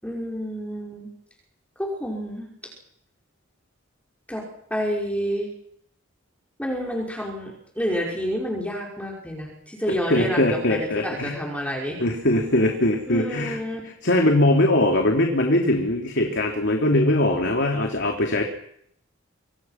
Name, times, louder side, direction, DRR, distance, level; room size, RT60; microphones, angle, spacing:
voice 1, 0.0-1.1 1.8-2.5 4.3-4.4 4.7-5.5 6.6-12.0 13.1-13.8, equal, 5° left, -2 dB, 5.7 m, -29 dB
voice 2, 10.1-11.3 12.0-13.6 14.0-18.4, left 1 dB, 60° left, 2 dB, 3.4 m, -21 dB
27.5 x 25.5 x 6.0 m, 0.70 s
head